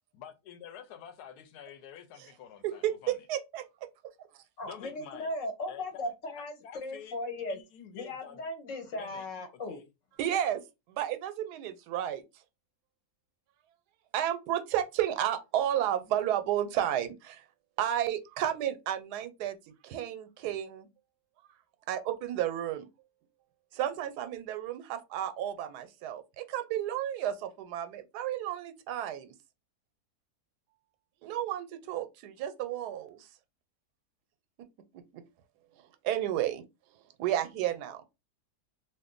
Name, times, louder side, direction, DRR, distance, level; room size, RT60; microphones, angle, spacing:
voice 1, 0.1-3.3 4.7-5.3 5.7-7.2 7.5-8.4 8.9-9.3 9.7-9.8, left 9 dB, 80° left, 1.1 m, -49 dB
voice 2, 2.6-3.7 10.2-10.6 10.9-12.2 14.1-17.4 17.8-19.6 19.8-20.9 21.9-22.9 23.7-29.3 31.2-33.3 34.9-35.2 36.0-36.6 37.2-38.0, right 11 dB, 90° right, 1.1 m, -32 dB
voice 3, 4.6-7.6 7.9-9.8, left 1 dB, 60° left, 1.0 m, -37 dB
2.5 x 2.5 x 3.7 m
omnidirectional pair, 1.7 m